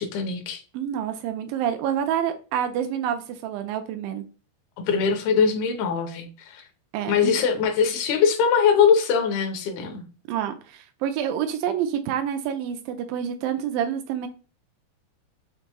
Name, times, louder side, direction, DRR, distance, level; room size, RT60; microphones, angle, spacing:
voice 1, 0.0-0.6 4.9-6.6 7.1-10.1, left 6 dB, 80° left, 2.8 m, -22 dB
voice 2, 0.7-4.2 6.9-7.3 10.3-14.3, right 9 dB, 85° right, 2.0 m, -28 dB
6.7 x 2.6 x 2.9 m
omnidirectional pair, 4.5 m